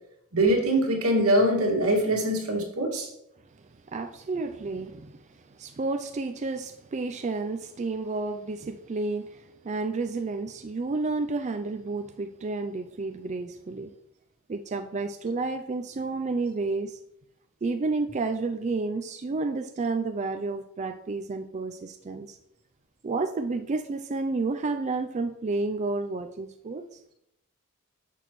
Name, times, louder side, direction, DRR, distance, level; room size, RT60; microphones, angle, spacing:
voice 1, 0.3-3.1, right 1 dB, 85° right, 1 dB, 2.1 m, -23 dB
voice 2, 3.6-13.9 14.5-17.0 17.6-22.4 23.0-27.0, right 3 dB, 35° right, 7 dB, 0.4 m, -31 dB
9.9 x 7.1 x 3.1 m, 0.79 s
head